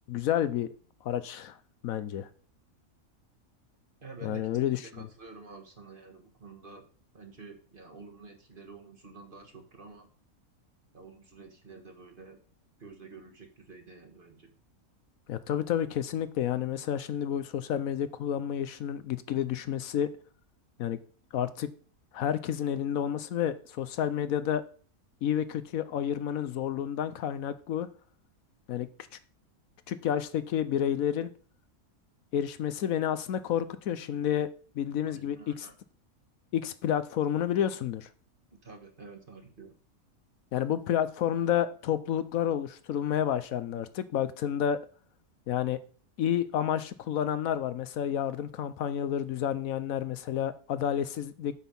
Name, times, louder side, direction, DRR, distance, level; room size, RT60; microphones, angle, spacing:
voice 1, 0.1-0.7 1.0-1.6 1.8-2.3 4.2-4.8 15.3-20.1 20.8-21.0 21.3-21.7 22.1-24.6 25.2-27.9 28.7-28.9 29.9-31.3 32.3-34.5 34.8-35.4 36.5-38.1 40.5-44.8 45.5-45.8 46.2-51.5, left 10 dB, 75° left, 13 dB, 1.1 m, -30 dB
voice 2, 4.0-4.6 4.9-6.8 7.1-10.1 10.9-12.4 12.8-14.5 35.0-35.7 38.6-39.7, right 4 dB, 40° right, 4 dB, 1.5 m, -49 dB
8.2 x 6.2 x 5.4 m, 0.42 s
omnidirectional pair, 1.5 m